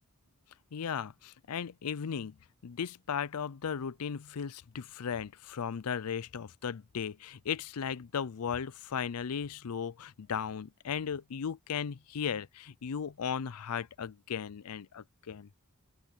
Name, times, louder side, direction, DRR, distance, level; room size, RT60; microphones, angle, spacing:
voice 1, 0.7-2.4 2.6-15.5, left 7 dB, 85° left, 0.5 m, -36 dB
open air
head